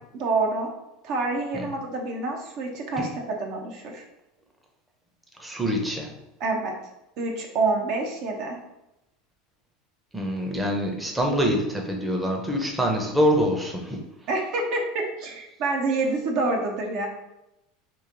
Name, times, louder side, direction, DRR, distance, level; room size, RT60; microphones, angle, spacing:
voice 1, 0.1-0.7 1.0-4.0 6.4-6.8 7.2-8.6 14.3-17.1, right 3 dB, 60° right, 1 dB, 0.8 m, -27 dB
voice 2, 5.4-6.1 10.1-14.0, equal, 10° right, 1 dB, 0.7 m, -25 dB
3.1 x 2.6 x 3.8 m, 0.89 s
supercardioid pair, 100°, 0 cm